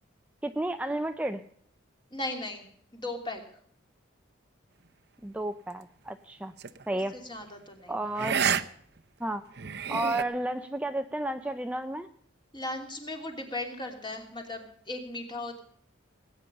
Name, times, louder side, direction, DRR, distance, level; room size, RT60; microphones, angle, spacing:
voice 1, 0.4-1.4 5.2-6.5 6.9-7.2 7.9-8.4 9.2-9.4 9.9-12.1, right 1 dB, 5° right, 7 dB, 0.5 m, -32 dB
voice 2, 2.1-2.7 2.9-3.4 6.9-8.4 12.5-15.6, left 2 dB, 25° left, 4 dB, 2.9 m, -37 dB
sound 1, 6.6-6.8 8.2-8.6 9.0-9.1 9.6-10.2, right 7 dB, 55° right, 0.8 m, -28 dB
19.0 x 9.3 x 6.8 m, 0.62 s
head